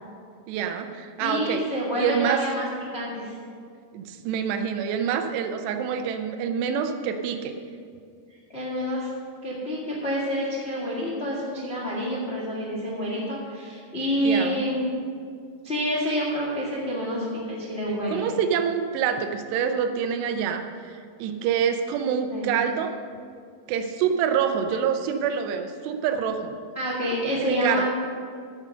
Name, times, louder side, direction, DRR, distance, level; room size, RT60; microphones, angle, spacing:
voice 1, 0.5-1.6 2.0-2.4 3.9-7.5 14.2-14.6 18.1-22.9 23.7-26.6 27.4-27.8, right 7 dB, 85° right, 7 dB, 2.9 m, -26 dB
voice 2, 1.2-2.7 2.9-3.3 8.5-9.1 9.4-14.8 15.6-18.3 22.3-22.5 26.7-27.8, equal, 35° left, -5 dB, 0.9 m, -28 dB
14.5 x 6.3 x 6.6 m, 2.2 s
omnidirectional pair, 4.8 m